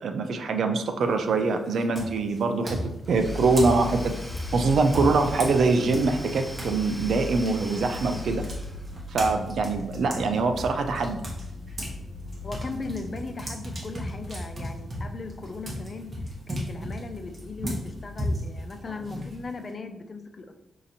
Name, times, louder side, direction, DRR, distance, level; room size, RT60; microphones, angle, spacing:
voice 1, 0.0-2.8 3.1-4.1 4.5-8.5 9.1-11.2, right 3 dB, 75° right, 6 dB, 0.4 m, -24 dB
sound 1, 1.0-1.4 1.9-6.8 7.1-12.0 12.3-19.7, equal, 40° right, 1.1 m, -35 dB
Domestic sounds home sounds / Tools, 3.0-9.2, equal, 5° right, 0.7 m, -43 dB
sound 2, 3.1-19.4, left 2 dB, 65° left, 0.8 m, -40 dB
voice 2, 12.4-16.1 16.5-20.6, left 3 dB, 40° left, 6 dB, 0.4 m, -38 dB
5.9 x 2.8 x 2.7 m, 0.93 s
cardioid pair, 90°, 0 cm